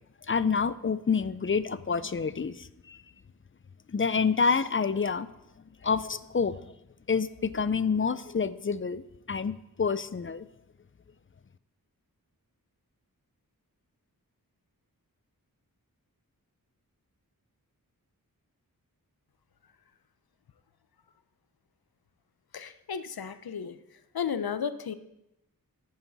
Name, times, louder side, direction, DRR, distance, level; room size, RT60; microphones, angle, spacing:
voice 1, 0.3-3.0 3.9-5.3 5.8-6.7 7.1-9.0 9.3-10.5, left 5 dB, 35° left, 16 dB, 0.5 m, -28 dB
voice 2, 22.5-23.8 24.1-24.9, left 7 dB, 80° left, 12 dB, 0.7 m, -33 dB
13.5 x 9.0 x 4.0 m, 0.86 s
wide cardioid pair, 75°, 36 cm